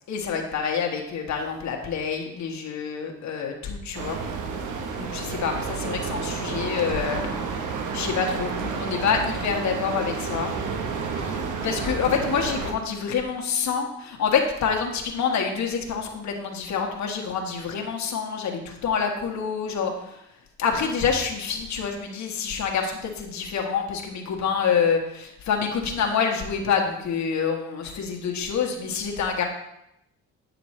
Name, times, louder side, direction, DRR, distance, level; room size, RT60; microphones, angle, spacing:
voice 1, 0.1-4.2 5.0-7.2 7.9-10.5 11.2-20.2 20.6-29.5, left 6 dB, 65° left, 1 dB, 1.4 m, -27 dB
sound 1, 3.9-12.7, right 5 dB, 80° right, 1.2 m, -30 dB
8.9 x 6.6 x 3.2 m, 0.81 s
cardioid pair, 90°, 30 cm